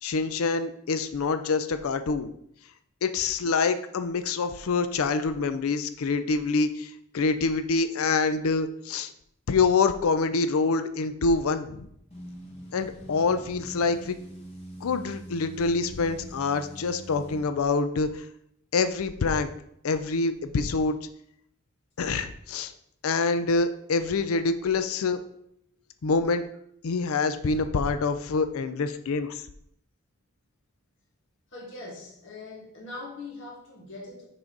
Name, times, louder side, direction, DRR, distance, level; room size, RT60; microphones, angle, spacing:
voice 1, 0.0-2.3 3.0-9.1 9.5-11.9 12.7-14.2 14.8-18.3 18.7-19.5 19.8-21.0 22.0-22.7 23.0-25.2 26.0-26.4 26.8-29.4, left 4 dB, 75° left, 10 dB, 0.5 m, -26 dB
sound 1, 12.1-17.5, right 1 dB, 30° left, 1.3 m, -43 dB
voice 2, 31.5-34.3, left 2 dB, 55° left, -3 dB, 1.8 m, -41 dB
5.9 x 5.0 x 3.9 m, 0.71 s
head